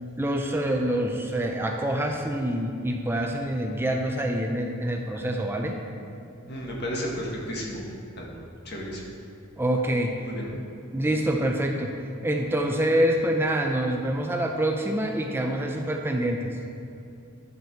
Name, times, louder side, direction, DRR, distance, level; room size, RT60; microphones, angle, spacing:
voice 1, 0.2-5.7 9.6-10.1 10.5-10.6 10.9-11.9 12.2-16.5, right 1 dB, 10° right, 2 dB, 0.5 m, -26 dB
voice 2, 6.5-7.8 8.2-8.3 8.7-9.0 10.2-10.5, equal, 55° left, -2 dB, 1.7 m, -33 dB
10.5 x 6.7 x 4.6 m, 2.5 s
head